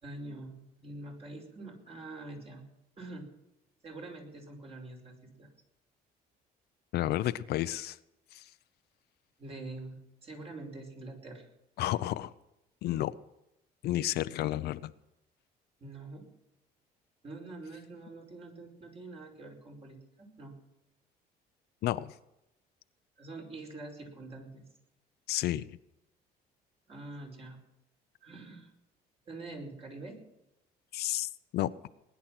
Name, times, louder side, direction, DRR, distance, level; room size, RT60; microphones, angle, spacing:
voice 1, 0.0-2.6 3.0-3.2 3.8-5.5 9.4-11.5 15.8-16.3 17.2-20.5 23.2-24.6 26.9-27.6 28.2-28.7 29.3-30.2, right 2 dB, 35° right, 1 dB, 5.1 m, -45 dB
voice 2, 6.9-8.0 8.3-8.4 11.8-12.3 12.8-13.1 13.8-14.9 21.8-22.1 25.3-25.8 30.9-31.9, left 14 dB, 70° left, 13 dB, 0.7 m, -31 dB
20.0 x 10.5 x 6.0 m, 0.90 s
cardioid pair, 110°, 17 cm